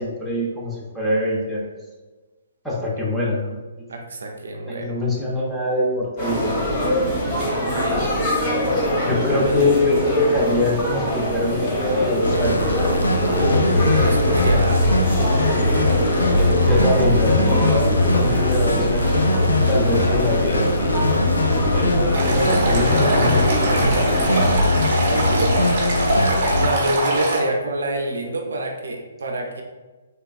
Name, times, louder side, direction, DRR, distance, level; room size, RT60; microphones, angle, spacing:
voice 1, 0.0-1.6 2.6-3.6 4.6-6.6 9.0-12.7 16.6-19.2 19.7-21.1 22.3-23.8, left 2 dB, 5° left, -6 dB, 0.6 m, -23 dB
voice 2, 3.9-4.9 7.7-8.1 9.2-9.8 13.9-14.9 15.4-15.9 25.0-26.0 26.6-29.6, right 2 dB, 75° right, 2 dB, 0.4 m, -27 dB
sound 1, 6.2-24.5, equal, 35° left, 1.0 m, -24 dB
sound 2, 12.2-26.7, left 2 dB, 90° left, 0.3 m, -20 dB
Stream, 22.1-27.4, right 1 dB, 50° right, 0.9 m, -23 dB
3.3 x 2.2 x 2.3 m, 1.2 s
figure-of-eight pair, 135°, 0 cm